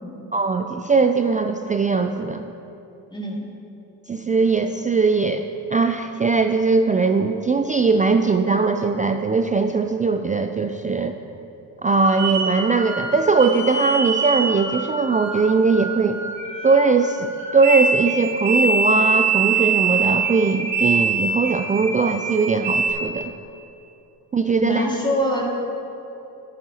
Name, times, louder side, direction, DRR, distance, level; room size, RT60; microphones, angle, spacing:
voice 1, 0.3-2.5 4.1-5.4 5.7-11.1 11.8-16.2 16.6-23.3 24.3-24.9, right 4 dB, 20° right, 6 dB, 0.3 m, -20 dB
voice 2, 3.1-3.5 24.6-25.4, equal, 10° left, -3 dB, 2.2 m, -24 dB
sound 1, 12.0-22.9, right 4 dB, 65° right, 1.8 m, -24 dB
11.5 x 9.7 x 2.9 m, 2.9 s
hypercardioid pair, 50°, 49 cm